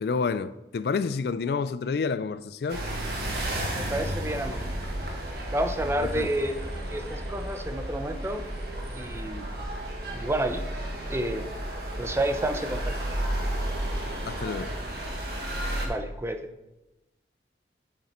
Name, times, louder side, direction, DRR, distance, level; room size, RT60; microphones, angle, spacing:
voice 1, 0.0-2.8 6.0-6.3 9.2-9.3 14.3-14.7, left 5 dB, 60° left, 0.4 m, -29 dB
sound 1, 2.7-15.9, right 1 dB, 60° right, 1.5 m, -32 dB
voice 2, 3.7-4.6 5.5-6.6 6.9-8.4 8.9-9.4 10.1-10.6 11.1-11.4 12.0-12.9 15.8-16.4, right 1 dB, 15° right, 0.6 m, -29 dB
8.1 x 7.3 x 4.3 m
head